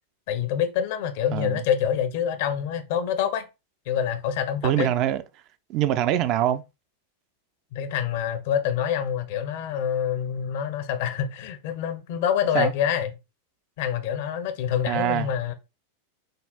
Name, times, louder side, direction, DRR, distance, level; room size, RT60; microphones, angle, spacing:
voice 1, 0.3-3.4 3.9-4.9 7.7-13.1 13.8-15.5, left 9 dB, 50° left, 0.6 m, -26 dB
voice 2, 4.6-5.2 5.7-6.6 12.5-12.7 14.9-15.3, right 11 dB, 40° right, 0.3 m, -23 dB
6.4 x 2.3 x 2.2 m
figure-of-eight pair, 90°, 0 cm